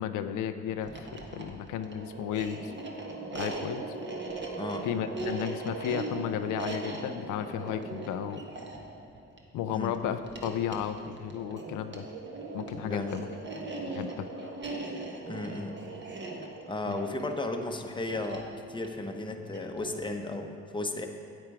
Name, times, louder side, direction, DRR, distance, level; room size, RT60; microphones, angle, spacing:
voice 1, 0.0-2.7 3.3-3.8 4.4-4.5 4.8-8.4 9.5-12.1 12.5-13.3 13.9-14.5 16.9-17.0, left 9 dB, 85° left, 9 dB, 0.5 m, -34 dB
sound 1, 0.8-20.0, right 3 dB, 35° right, 1.4 m, -39 dB
voice 2, 9.7-10.0 12.8-13.3 15.3-15.7 16.7-21.1, left 2 dB, 15° left, 4 dB, 0.9 m, -34 dB
8.9 x 8.8 x 4.8 m, 2.6 s
cardioid pair, 90°, 30 cm